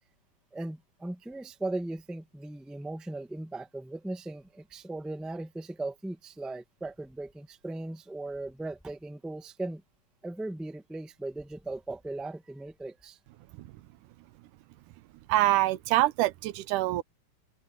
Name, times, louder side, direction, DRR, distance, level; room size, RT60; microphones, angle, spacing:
voice 1, 0.5-9.8 10.2-13.2, right 2 dB, ahead, 0.7 m, -38 dB
voice 2, 15.3-17.0, right 16 dB, 90° right, 2.2 m, -25 dB
omnidirectional pair, 3.6 m